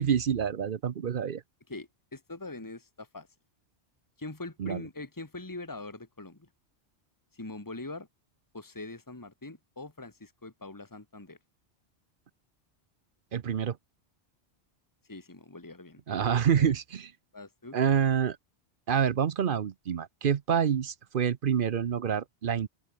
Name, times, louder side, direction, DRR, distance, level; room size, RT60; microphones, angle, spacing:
voice 1, 0.0-1.4 4.6-4.8 13.3-13.8 16.1-17.1 17.7-18.4 18.9-22.7, right 8 dB, 55° right, 0.8 m, -27 dB
voice 2, 1.7-3.3 4.2-6.5 7.3-8.1 8.5-11.4 15.1-16.0 16.5-16.7 17.3-17.8, left 2 dB, 15° left, 1.9 m, -42 dB
open air
omnidirectional pair, 1.1 m